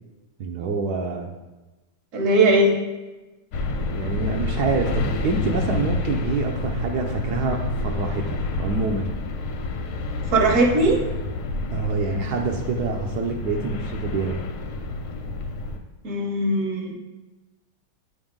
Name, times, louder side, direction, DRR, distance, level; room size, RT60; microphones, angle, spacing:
voice 1, 0.4-1.3 3.9-9.1 11.7-14.4, right 4 dB, 80° right, 1 dB, 0.9 m, -26 dB
voice 2, 2.1-2.8 10.3-11.0 16.0-16.9, right 2 dB, 50° right, 1 dB, 1.1 m, -19 dB
sound 1, 3.5-15.8, left 2 dB, 90° left, 1.5 m, -28 dB
9.3 x 3.5 x 3.6 m, 1.1 s
omnidirectional pair, 2.3 m